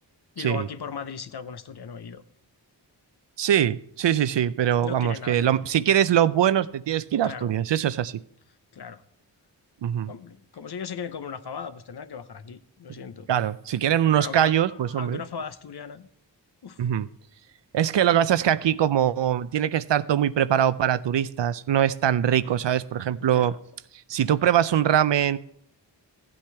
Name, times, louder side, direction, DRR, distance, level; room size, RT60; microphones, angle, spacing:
voice 1, 0.4-2.2 4.8-5.6 7.2-7.5 8.7-9.0 10.1-13.3 14.1-16.1 16.6-16.8 23.2-23.6, left 6 dB, 60° left, 12 dB, 0.8 m, -37 dB
voice 2, 3.4-8.2 9.8-10.1 13.3-15.2 16.8-17.1 17.7-23.5 24.1-25.4, right 10 dB, 75° right, 15 dB, 0.6 m, -22 dB
14.5 x 8.7 x 3.4 m, 0.71 s
wide cardioid pair, 60°, 44 cm